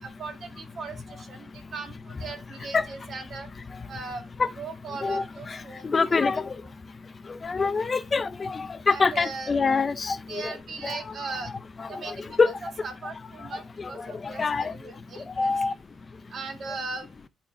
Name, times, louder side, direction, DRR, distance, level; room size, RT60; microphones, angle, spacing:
voice 1, 0.0-3.5 3.9-4.2 4.6-6.2 8.9-9.5 10.3-11.5 11.9-12.2 12.8-15.7 16.3-17.1, right 4 dB, 50° right, 2.0 m, -38 dB
voice 2, 5.0-5.6 5.8-6.6 7.4-10.5 10.8-11.3 11.8-12.5 13.8-14.7 15.4-15.7, left 4 dB, 30° left, 0.5 m, -26 dB
11.5 x 4.2 x 2.6 m
cardioid pair, 120°, 0 cm